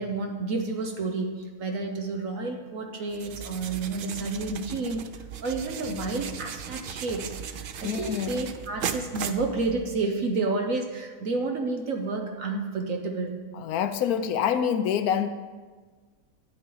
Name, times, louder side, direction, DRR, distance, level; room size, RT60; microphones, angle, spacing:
voice 1, 0.0-5.1 5.4-13.4, right 3 dB, 65° right, 4 dB, 1.3 m, -30 dB
sound 1, 3.1-10.1, right 7 dB, 90° right, 0.4 m, -37 dB
voice 2, 7.8-8.5 13.5-15.3, left 8 dB, 80° left, 9 dB, 1.1 m, -26 dB
11.5 x 9.8 x 3.9 m, 1.4 s
omnidirectional pair, 1.6 m